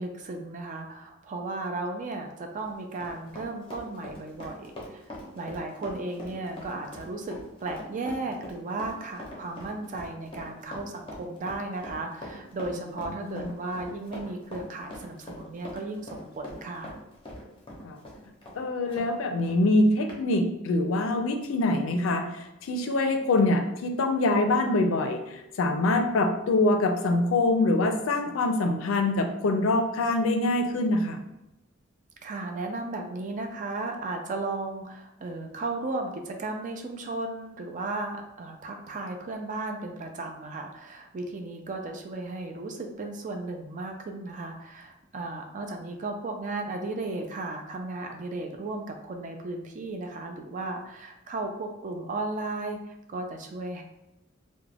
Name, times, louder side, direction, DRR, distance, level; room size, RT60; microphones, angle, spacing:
voice 1, 0.0-5.0 5.3-16.9 32.2-53.8, right 2 dB, 40° right, 4 dB, 0.4 m, -35 dB
Run, 2.4-19.1 19.4-19.6 20.1-20.2, left 1 dB, 25° left, 0.6 m, -42 dB
voice 2, 18.6-22.3 22.6-25.2 25.6-31.2, left 2 dB, 70° left, 5 dB, 0.4 m, -24 dB
2.3 x 2.1 x 3.3 m, 0.92 s
head